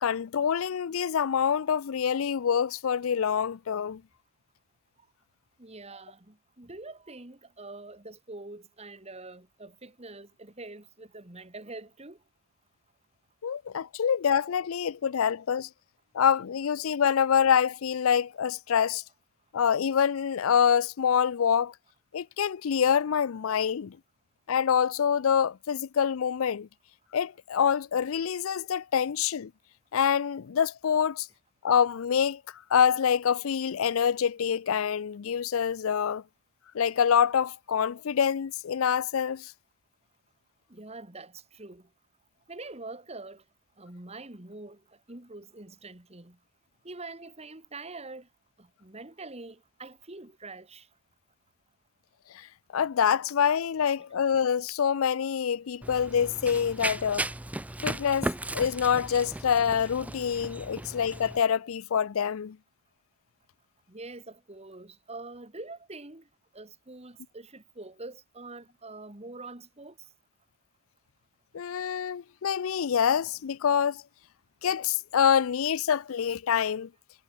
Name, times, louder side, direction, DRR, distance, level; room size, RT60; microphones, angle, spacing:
voice 1, 0.0-4.0 13.4-15.7 16.1-19.0 19.5-21.7 22.1-24.0 24.5-26.7 27.1-29.5 29.9-31.3 31.6-32.4 32.7-36.2 36.7-39.5 52.7-57.3 57.8-58.3 58.5-62.6 71.5-74.0 74.6-76.9, left 7 dB, 75° left, 0.4 m, -26 dB
voice 2, 5.6-12.2 40.7-41.9 42.5-43.4 43.8-46.4 46.8-48.3 48.6-50.9 63.9-66.3 66.5-70.1, right 2 dB, 30° right, 2.0 m, -44 dB
Run, 55.8-61.4, right 1 dB, 5° right, 0.6 m, -36 dB
head